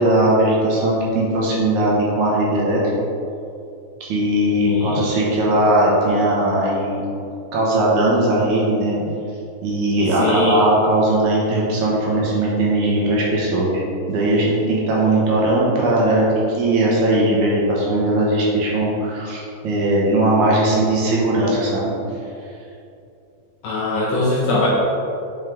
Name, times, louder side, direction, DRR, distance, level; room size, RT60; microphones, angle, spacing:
voice 1, 0.0-2.8 4.0-7.0 7.5-9.0 9.6-13.8 14.1-16.3 16.6-21.9, right 1 dB, 70° right, -5 dB, 2.3 m, -19 dB
voice 2, 4.5-5.0 10.2-10.6 23.6-24.7, left 2 dB, 75° left, -5 dB, 1.6 m, -21 dB
5.9 x 4.6 x 3.5 m, 2.6 s
omnidirectional pair, 3.7 m